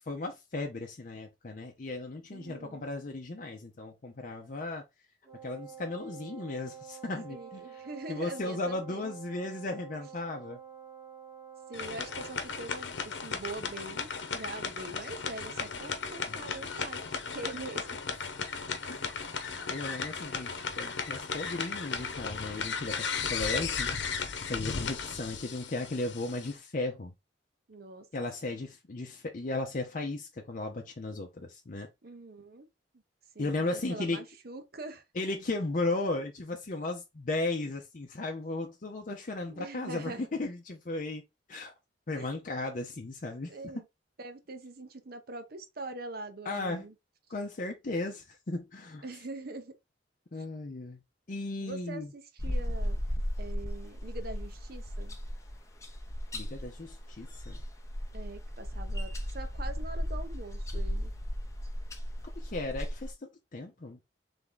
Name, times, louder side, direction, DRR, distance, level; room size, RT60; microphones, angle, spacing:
voice 1, 0.1-4.8 5.4-7.6 8.1-10.6 16.2-16.4 18.9-19.0 19.7-23.9 24.4-27.1 28.1-31.9 33.4-34.2 35.2-41.2 41.5-41.7 42.1-43.5 46.5-46.9 47.3-49.0 50.3-51.0 51.3-52.1 56.3-57.6 62.4-64.0, left 2 dB, 45° left, 0.6 m, -35 dB
voice 2, 2.3-2.9 7.3-9.1 11.7-18.0 27.7-28.5 32.0-32.7 33.3-35.0 39.5-40.3 42.1-42.3 43.5-43.9 44.2-46.9 49.0-49.7 51.6-53.0 53.4-55.2 58.1-61.1, right 2 dB, 55° right, 0.9 m, -43 dB
Wind instrument woodwind instrument, 5.2-12.5, right 8 dB, 15° right, 1.0 m, -48 dB
sound 1, 11.7-26.5, left 5 dB, 80° left, 0.9 m, -36 dB
sound 2, 52.4-63.1, equal, 15° left, 0.8 m, -35 dB
3.6 x 3.5 x 3.9 m
head